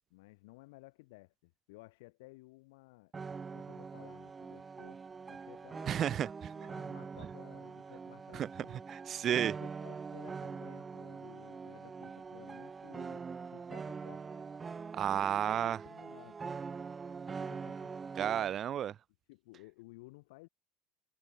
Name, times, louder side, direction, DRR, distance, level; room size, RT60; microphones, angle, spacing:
voice 1, 0.1-3.1 3.5-5.0 5.3-6.3 6.5-8.8 9.6-13.2 13.5-14.5 15.2-16.4 17.5-18.2 19.3-20.5, left 24 dB, 85° left, 3.7 m, -56 dB
sound 1, 3.1-18.6, right 5 dB, 25° right, 2.1 m, -44 dB
voice 2, 5.9-6.5 8.3-8.5 8.9-9.5 14.9-15.8 18.2-18.9, right 10 dB, 40° right, 0.9 m, -32 dB
supercardioid pair, 110°, 0 cm